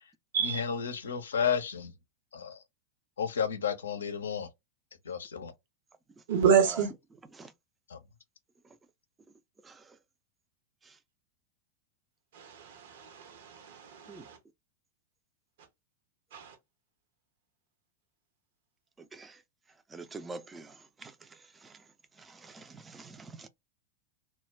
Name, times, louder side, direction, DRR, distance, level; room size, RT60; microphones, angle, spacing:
voice 1, 0.4-1.9 2.3-2.6 3.2-4.5 5.1-5.5 7.9-8.0, left 7 dB, 75° left, 0.5 m, -32 dB
voice 2, 6.3-6.9 12.3-14.4 16.3-16.5, right 7 dB, 65° right, 0.7 m, -28 dB
voice 3, 19.9-20.7 21.0-21.1 22.3-23.5, right 3 dB, 15° right, 0.4 m, -45 dB
2.2 x 2.1 x 3.3 m
figure-of-eight pair, 90°, 0 cm